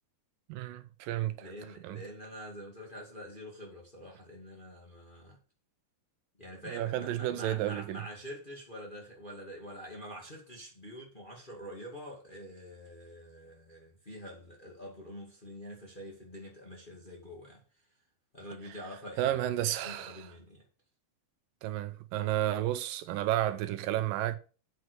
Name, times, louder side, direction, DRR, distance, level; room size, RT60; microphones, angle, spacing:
voice 1, 0.5-1.5 1.8-2.0 6.7-8.0 19.2-20.3 21.6-24.4, right 13 dB, 85° right, 2.3 m, -32 dB
voice 2, 1.4-5.4 6.4-17.6 18.3-20.6, equal, 20° left, 1.7 m, -46 dB
8.2 x 6.3 x 6.3 m
omnidirectional pair, 4.0 m